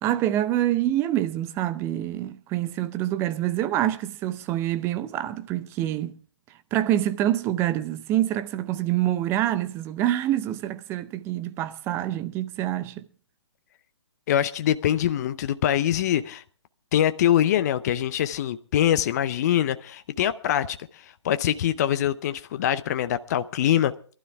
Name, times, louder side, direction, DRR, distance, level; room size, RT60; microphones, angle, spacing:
voice 1, 0.0-6.1 6.7-13.0, right 13 dB, 15° right, 0.6 m, -26 dB
voice 2, 14.3-16.4 16.9-23.9, left 11 dB, 35° left, 0.7 m, -24 dB
22.5 x 12.5 x 3.5 m
figure-of-eight pair, 130°, 15 cm